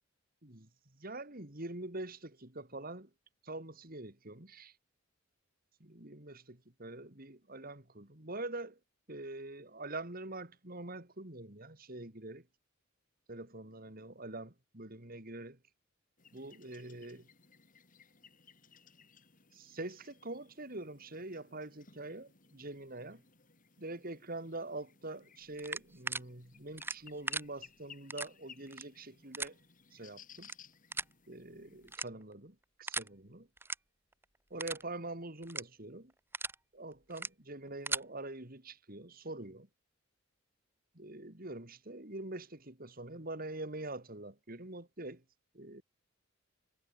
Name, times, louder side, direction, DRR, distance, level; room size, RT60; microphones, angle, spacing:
voice 1, 1.0-3.1 3.4-4.7 5.8-8.8 9.1-12.4 13.3-15.6 16.3-17.2 19.5-23.2 23.8-29.6 29.9-30.5 31.3-33.5 34.5-36.1 36.7-39.7 40.9-45.2 45.5-45.8, right 2 dB, 45° right, 3.3 m, -44 dB
sound 1, 16.2-32.0, left 6 dB, 40° left, 5.4 m, -60 dB
sound 2, 25.6-26.2 26.8-27.4 28.1-28.3 28.7-28.8 29.3-29.5 30.4-30.5 30.9-31.1 31.9-32.3 32.9-33.1 33.6-33.7 34.1-34.2 34.6-34.8 35.4-35.6 36.1-36.5 37.1-37.3 37.7-38.0, right 3 dB, 10° right, 1.4 m, -37 dB
head